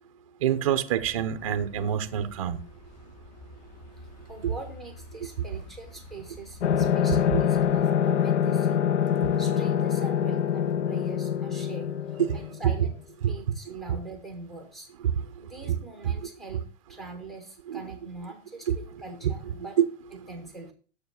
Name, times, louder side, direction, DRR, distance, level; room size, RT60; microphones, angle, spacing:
voice 1, 0.4-2.6 9.2-9.3 12.3-12.4 13.2-13.3 15.4-15.5 17.7-17.8 18.7-18.8 19.8-19.9, right 9 dB, 30° right, 0.6 m, -26 dB
sound 1, 0.9-7.9, left 1 dB, 40° left, 2.5 m, -49 dB
voice 2, 4.0-8.8 9.4-11.9 12.3-12.9 13.3-14.9 15.4-19.8 20.1-20.7, right 3 dB, ahead, 0.8 m, -43 dB
sound 2, 6.6-12.9, left 9 dB, 75° left, 0.6 m, -25 dB
7.0 x 6.6 x 6.8 m
hypercardioid pair, 170°, 35 cm